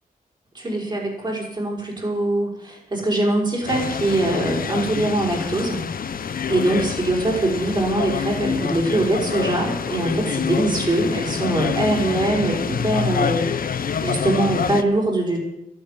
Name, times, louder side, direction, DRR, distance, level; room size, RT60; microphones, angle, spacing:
voice 1, 0.5-5.8 6.1-15.4, right 1 dB, 30° right, -2 dB, 5.4 m, -23 dB
sound 1, 3.7-14.8, left 7 dB, 75° left, 0.9 m, -27 dB
13.5 x 12.5 x 8.5 m, 0.86 s
wide cardioid pair, 165°, 15 cm